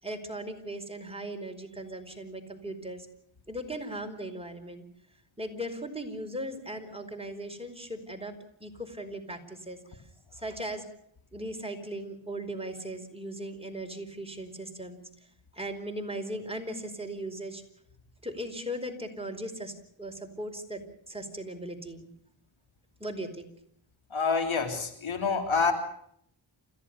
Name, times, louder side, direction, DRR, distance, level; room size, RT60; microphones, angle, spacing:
voice 1, 0.0-3.1 3.5-4.9 5.4-8.3 8.6-9.8 10.3-10.8 11.3-15.0 15.5-17.6 18.2-19.7 20.0-22.1 23.0-23.5, right 1 dB, 10° right, 4 dB, 4.9 m, -38 dB
voice 2, 24.1-25.7, left 5 dB, 80° left, 6 dB, 3.5 m, -27 dB
29.0 x 15.0 x 6.9 m, 0.67 s
cardioid pair, 45°, 47 cm